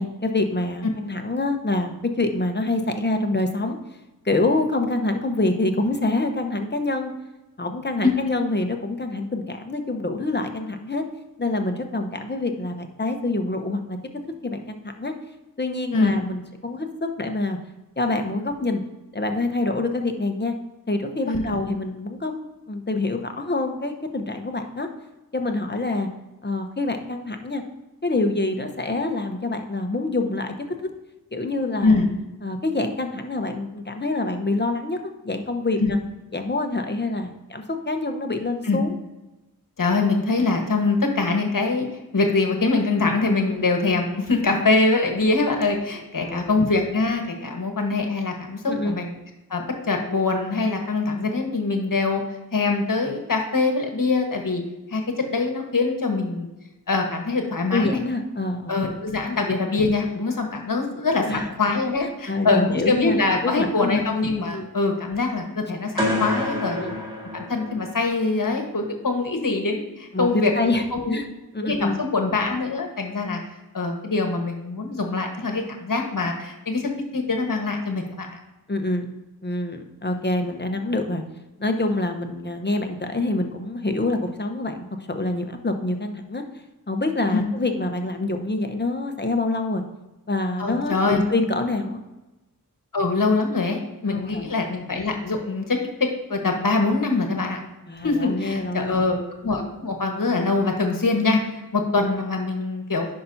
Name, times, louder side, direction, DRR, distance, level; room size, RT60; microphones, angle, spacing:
voice 1, 0.0-3.8 4.2-7.1 7.6-11.0 11.4-14.0 14.4-15.1 15.6-17.6 18.0-18.8 19.1-20.5 20.9-24.9 25.3-26.1 26.4-27.6 28.0-30.5 31.3-32.0 32.4-35.0 35.2-36.0 36.3-38.9 43.5-43.6 46.2-46.6 48.7-49.0 57.7-58.7 61.3-61.5 62.3-63.2 63.4-64.0 64.5-64.7 66.7-66.9 70.1-70.8 71.1-71.3 71.5-72.0 78.7-79.1 79.4-81.2 81.6-86.4 86.9-89.8 90.3-92.0 94.1-94.5 97.9-99.1, left 2 dB, 30° left, 5 dB, 0.9 m, -26 dB
voice 2, 39.8-41.8 42.1-49.2 49.5-52.2 52.5-54.6 54.9-55.0 55.3-56.5 56.9-58.0 58.7-66.8 67.3-70.5 70.9-71.2 71.6-73.4 73.7-76.8 77.1-78.4 87.3-87.5 90.6-91.2 92.9-95.8 96.3-97.6 98.0-101.4 101.7-103.1, left 3 dB, 60° left, 3 dB, 1.3 m, -23 dB
sound 1, 66.0-68.1, left 1 dB, 15° right, 2.2 m, -28 dB
10.0 x 5.7 x 2.7 m, 1.0 s
wide cardioid pair, 75°, 36 cm